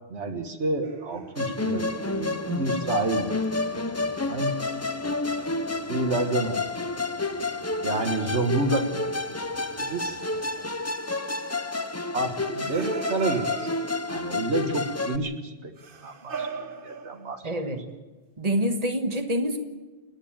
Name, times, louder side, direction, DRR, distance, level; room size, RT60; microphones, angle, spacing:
voice 1, 0.1-3.3 3.7-4.6 5.9-6.6 7.8-9.1 9.8-10.2 12.1-13.7 14.1-15.7 16.0-17.4, right 2 dB, 85° right, 5 dB, 1.8 m, -29 dB
sound 1, 0.8-2.3 5.3-5.8 7.8-9.6 12.4-14.3 15.8-17.5, right 5 dB, 55° right, 1.3 m, -39 dB
Musical instrument, 1.4-15.2, left 3 dB, 15° left, 0.6 m, -30 dB
sound 2, 1.6-10.7, equal, 45° left, 4.8 m, -50 dB
voice 2, 17.4-17.8 18.4-19.6, equal, 35° right, 4 dB, 1.8 m, -26 dB
30.0 x 10.0 x 8.8 m, 1.2 s
omnidirectional pair, 1.1 m